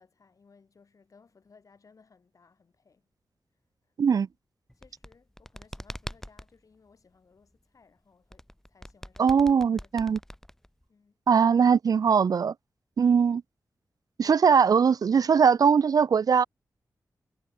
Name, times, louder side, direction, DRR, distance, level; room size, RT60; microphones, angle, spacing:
voice 1, 0.0-3.1 3.8-3.9 4.7-9.4 9.8-10.1 10.9-11.2, left 5 dB, 50° left, 6.9 m, -61 dB
sound 1, 4.7-6.5 8.3-10.9, left 1 dB, 5° left, 1.5 m, -42 dB
voice 2, 9.2-10.2 11.3-12.5 13.0-13.4 14.2-16.4, right 6 dB, 60° right, 0.5 m, -21 dB
wide cardioid pair, 120°, 7 cm